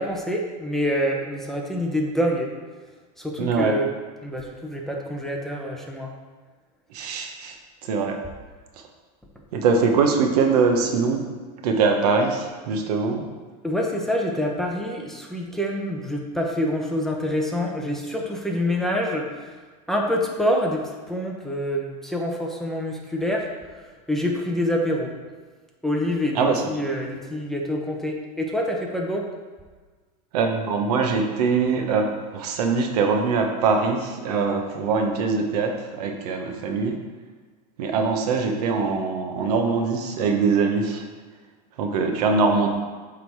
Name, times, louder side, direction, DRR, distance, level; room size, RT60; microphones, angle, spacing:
voice 1, 0.0-2.5 3.2-3.9 4.2-6.1 13.6-19.6 19.9-23.5 24.1-25.1 25.8-29.3, equal, ahead, -1 dB, 0.8 m, -26 dB
voice 2, 3.4-3.7 6.9-7.6 7.8-8.2 9.5-11.3 11.6-13.3 26.3-26.6 30.3-37.0 37.8-41.0 41.8-42.7, right 4 dB, 75° right, 4 dB, 1.1 m, -22 dB
8.1 x 3.7 x 4.7 m, 1.4 s
supercardioid pair, 130°, 20 cm